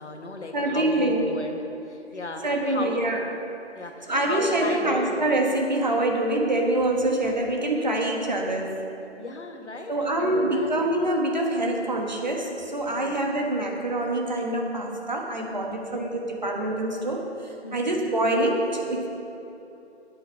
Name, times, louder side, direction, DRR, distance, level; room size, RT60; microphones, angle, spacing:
voice 1, 0.0-1.5 1.9-3.0 3.7-5.1 9.2-10.7 12.9-13.1 15.6-16.0 17.6-18.0, left 2 dB, 80° left, 3 dB, 1.7 m, -36 dB
voice 2, 0.5-1.2 2.4-3.2 4.1-8.8 9.9-19.1, right 1 dB, 40° right, 1 dB, 1.4 m, -25 dB
9.1 x 8.9 x 6.4 m, 2.9 s
figure-of-eight pair, 175°, 34 cm